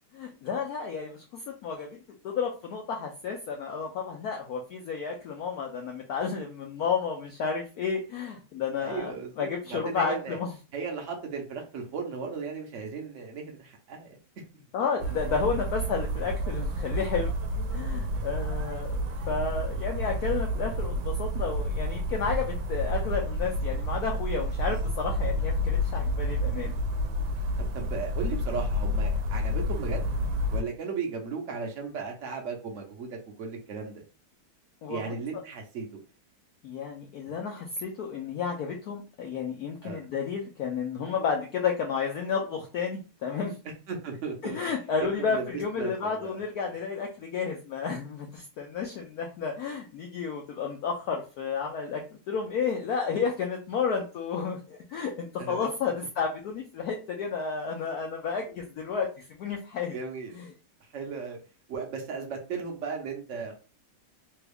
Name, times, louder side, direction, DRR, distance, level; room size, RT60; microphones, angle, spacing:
voice 1, 0.1-10.5 14.7-17.3 17.7-26.8 34.8-35.1 36.6-43.6 44.4-60.0 60.3-60.5, left 5 dB, 75° left, 1 dB, 0.9 m, -32 dB
voice 2, 8.8-10.4 10.7-14.2 27.6-30.1 30.5-34.0 34.9-36.0 39.8-40.1 43.9-44.6 45.0-45.5 45.8-46.4 55.4-55.7 59.9-60.4 60.9-61.4 61.7-63.5, right 5 dB, 55° right, 1 dB, 0.8 m, -36 dB
sound 1, 15.0-30.6, equal, 75° right, 1.3 m, -30 dB
3.4 x 2.3 x 3.3 m, 0.34 s
omnidirectional pair, 2.2 m